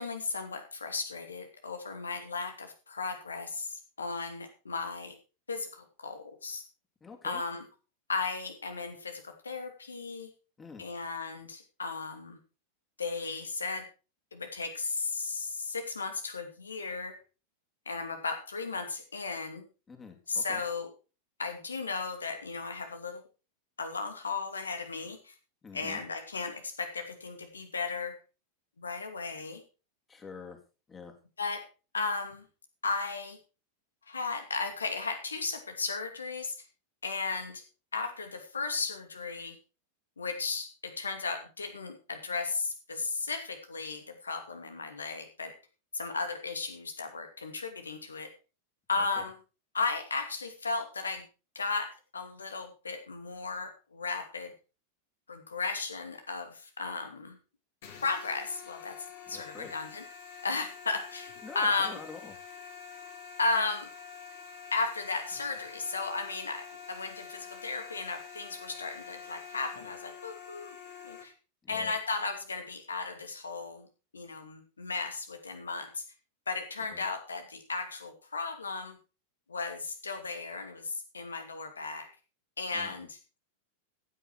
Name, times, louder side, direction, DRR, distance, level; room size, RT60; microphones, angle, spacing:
voice 1, 0.0-5.1 5.5-6.6 7.2-7.6 8.1-10.3 10.8-12.4 13.0-13.9 14.3-17.2 17.9-19.6 20.3-20.9 21.4-23.2 23.8-25.3 25.7-28.1 28.8-29.6 31.4-31.6 31.9-32.4 32.8-33.4 34.1-36.6 37.0-37.6 37.9-39.6 40.2-45.5 45.9-48.3 48.9-49.3 49.7-51.2 51.5-54.5 55.3-57.4 58.0-59.0 59.3-60.0 60.4-62.0 63.4-63.9 64.7-70.8 71.0-71.3 71.7-73.9 74.1-76.0 76.5-79.0 79.5-82.1 82.6-83.4, left 4 dB, 75° left, 7 dB, 2.6 m, -35 dB
voice 2, 7.0-7.4 10.6-10.8 19.9-20.6 25.6-26.0 30.1-30.6 30.9-31.1 49.0-49.2 59.3-59.7 61.4-62.3 71.6-71.9 76.9-77.0 82.7-82.9, left 5 dB, 20° left, 4 dB, 3.2 m, -46 dB
sound 1, 57.8-71.2, left 6 dB, 55° left, 4.4 m, -47 dB
15.0 x 9.4 x 4.6 m, 0.33 s
figure-of-eight pair, 90°, 0 cm